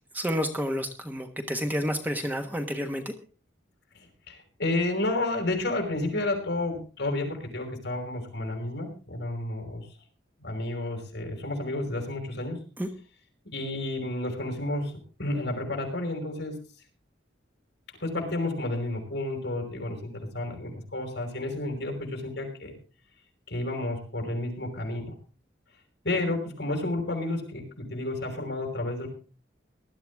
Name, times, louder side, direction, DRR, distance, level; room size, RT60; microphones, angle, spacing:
voice 1, 0.1-3.1 12.8-12.9, equal, 10° right, 4 dB, 1.3 m, -30 dB
voice 2, 3.9-9.9 10.4-12.6 13.5-16.6 18.0-22.8 23.5-25.1 26.0-29.1, left 2 dB, 60° left, 3 dB, 5.5 m, -31 dB
19.5 x 12.5 x 3.6 m, 0.35 s
head